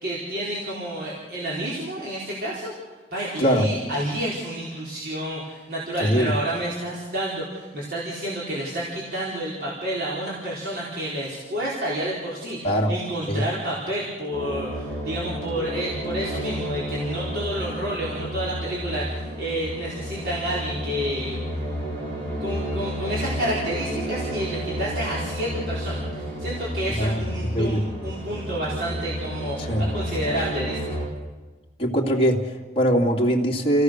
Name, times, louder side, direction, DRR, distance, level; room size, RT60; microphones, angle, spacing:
voice 1, 0.0-2.7 3.1-21.6 22.4-31.0, right 1 dB, 60° right, -6 dB, 4.6 m, -30 dB
voice 2, 6.0-6.3 12.6-12.9 13.3-13.5 26.9-27.8 29.7-29.8 31.8-33.8, equal, 35° left, -2 dB, 2.7 m, -22 dB
sound 1, 14.3-31.1, equal, 85° right, 7.4 m, -31 dB
29.0 x 17.0 x 6.6 m, 1.3 s
head